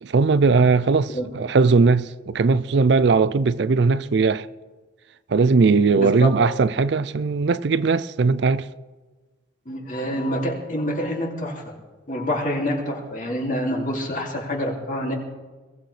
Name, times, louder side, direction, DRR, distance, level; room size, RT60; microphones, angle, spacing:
voice 1, 0.0-4.5 5.3-8.7, right 4 dB, 55° right, 0.4 m, -19 dB
voice 2, 6.0-6.3 9.7-11.6 12.1-15.1, equal, 40° left, 2.5 m, -26 dB
21.5 x 15.5 x 3.3 m
head